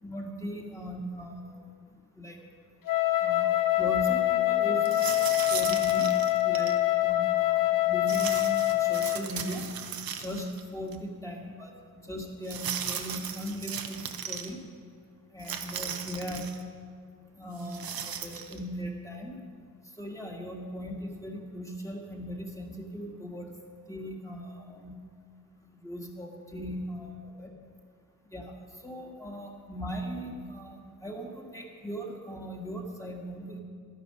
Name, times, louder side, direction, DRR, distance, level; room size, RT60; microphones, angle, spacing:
voice 1, 0.0-2.4 3.2-6.2 6.4-9.7 10.2-14.6 15.3-16.5 17.3-19.4 20.0-23.5 23.9-25.0 25.6-27.5 28.3-33.6, equal, 10° left, -1 dB, 1.7 m, -39 dB
Wind instrument woodwind instrument, 2.9-9.3, left 15 dB, 65° left, 0.7 m, -25 dB
sound 1, 4.8-6.8 8.1-10.6 10.9-11.0 12.4-14.5 15.4-16.6 17.6-18.6, right 8 dB, 80° right, 0.9 m, -37 dB
11.5 x 10.5 x 5.5 m, 2.1 s
wide cardioid pair, 100°, 35 cm